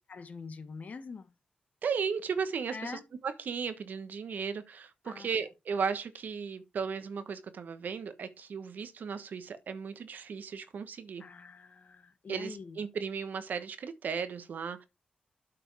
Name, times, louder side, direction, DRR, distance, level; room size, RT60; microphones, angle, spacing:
voice 1, 0.1-1.3 2.7-3.0 5.0-5.3 11.2-12.8, left 4 dB, 55° left, 1.4 m, -44 dB
voice 2, 1.8-11.2 12.3-14.8, right 6 dB, 70° right, 1.2 m, -35 dB
8.6 x 5.0 x 4.7 m
cardioid pair, 55°, 3 cm